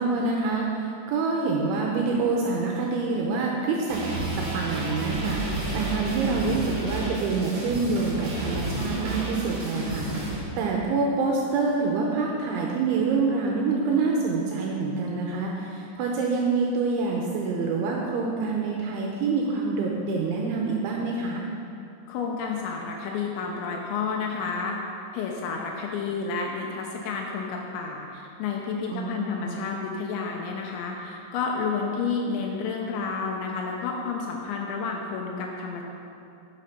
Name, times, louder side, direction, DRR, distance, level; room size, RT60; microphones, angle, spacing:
voice 1, 0.0-4.0 4.3-21.4 28.9-29.6, right 4 dB, 75° right, -1 dB, 3.1 m, -26 dB
sound 1, 3.9-10.4, right 1 dB, 35° right, 2.1 m, -31 dB
voice 2, 22.1-24.8 25.1-35.8, left 5 dB, 80° left, 0 dB, 2.8 m, -30 dB
10.5 x 7.5 x 5.9 m, 2.6 s
omnidirectional pair, 5.8 m